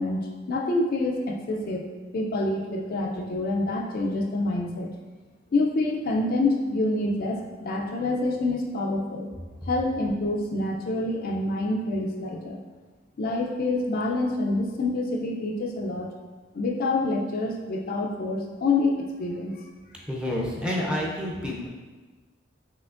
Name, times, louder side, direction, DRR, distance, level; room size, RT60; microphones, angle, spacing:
voice 1, 0.0-1.8 2.1-4.9 5.5-9.3 9.7-12.6 13.2-16.1 16.5-19.6, left 2 dB, 45° left, 0 dB, 0.4 m, -27 dB
voice 2, 20.1-21.7, left 1 dB, 5° right, -4 dB, 0.6 m, -29 dB
5.7 x 2.9 x 2.4 m, 1.3 s
head